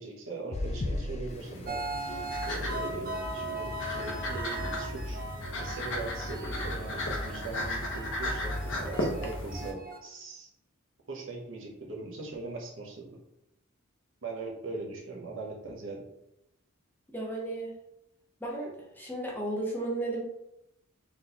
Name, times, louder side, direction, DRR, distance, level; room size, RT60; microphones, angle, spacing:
voice 1, 0.0-5.2 5.6-10.5 11.1-13.2 14.2-16.1, right 3 dB, 60° right, 0 dB, 0.9 m, -40 dB
sound 1, 0.5-5.2 5.8-6.0 6.4-6.5, left 2 dB, 30° left, 0.3 m, -39 dB
sound 2, 1.3-9.7, left 1 dB, 60° left, 0.7 m, -35 dB
sound 3, 1.6-10.0, right 2 dB, 40° right, 0.5 m, -39 dB
voice 2, 17.1-17.7 18.4-20.2, right 2 dB, 10° left, -3 dB, 0.8 m, -34 dB
3.9 x 3.6 x 2.9 m, 0.82 s
head